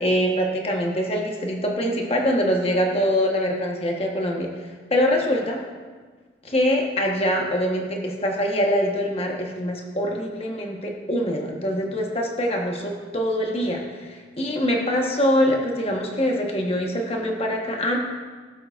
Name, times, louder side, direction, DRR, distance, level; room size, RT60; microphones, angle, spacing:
voice 1, 0.0-4.5 4.9-5.6 6.4-18.0, equal, 35° left, 1 dB, 1.2 m, -24 dB
16.5 x 7.6 x 2.5 m, 1.5 s
head